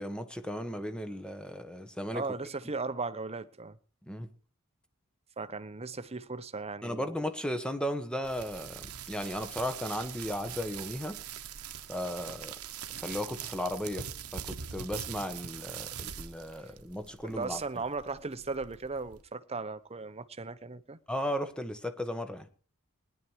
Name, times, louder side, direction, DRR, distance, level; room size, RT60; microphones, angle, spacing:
voice 1, 0.0-2.3 4.1-4.3 6.8-11.2 11.9-12.5 13.0-14.1 14.3-17.6 21.1-22.5, equal, 5° left, 1.3 m, -35 dB
voice 2, 2.1-3.8 5.4-7.0 16.6-16.7 17.2-21.0, right 4 dB, 30° right, 0.9 m, -37 dB
sound 1, 8.2-19.2, right 8 dB, 80° right, 1.1 m, -43 dB
19.5 x 10.5 x 4.6 m
head